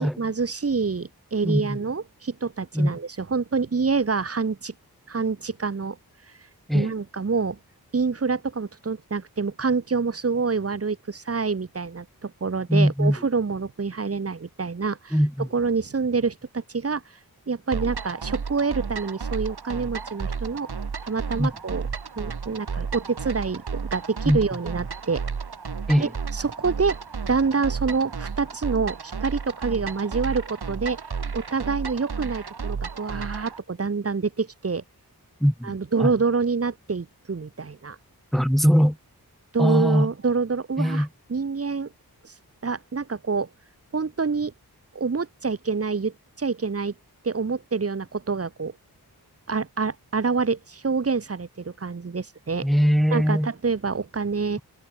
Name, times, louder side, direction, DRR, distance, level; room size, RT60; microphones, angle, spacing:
voice 1, 0.0-4.7 5.1-6.0 6.7-7.6 7.9-15.1 15.5-17.0 17.5-20.7 21.0-21.8 22.2-25.2 26.0-27.0 27.3-31.0 31.3-34.8 35.6-38.0 39.5-41.9 42.2-42.3 42.6-43.5 43.9-44.5 44.9-46.9 47.2-48.7 49.5-52.7 53.1-54.6, right 4 dB, 35° right, 1.1 m, -27 dB
voice 2, 1.4-1.8 2.7-2.9 6.7-6.9 12.7-13.2 15.1-15.5 21.4-21.5 24.2-24.4 25.9-26.1 35.4-35.7 36.0-36.1 38.3-39.0 39.6-40.1 40.8-41.1 52.6-53.5, equal, ahead, 1.2 m, -21 dB
sound 1, 17.7-33.6, right 5 dB, 75° right, 4.1 m, -32 dB
wide cardioid pair, 90°, 39 cm